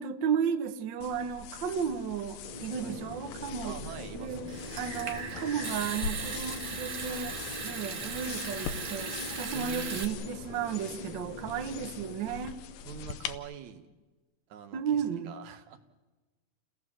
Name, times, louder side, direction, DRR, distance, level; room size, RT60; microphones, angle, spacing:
voice 1, 0.0-3.7 4.1-4.5 4.7-7.3 7.6-12.6 14.7-15.3, right 7 dB, 85° right, 8 dB, 1.0 m, -33 dB
sound 1, 1.0-13.4, left 7 dB, 70° left, 2.0 m, -43 dB
sound 2, 2.4-12.2, left 1 dB, 35° left, 0.6 m, -44 dB
voice 2, 3.6-4.6 9.5-10.1 11.5-11.6 12.8-13.9 14.5-15.8, right 9 dB, 65° right, 7 dB, 2.5 m, -45 dB
Water tap faucet / Sink (filling or washing) / Trickle dribble, 4.5-10.0, right 4 dB, 40° right, 1.2 m, -38 dB
29.0 x 16.5 x 7.5 m, 1.2 s
omnidirectional pair, 3.6 m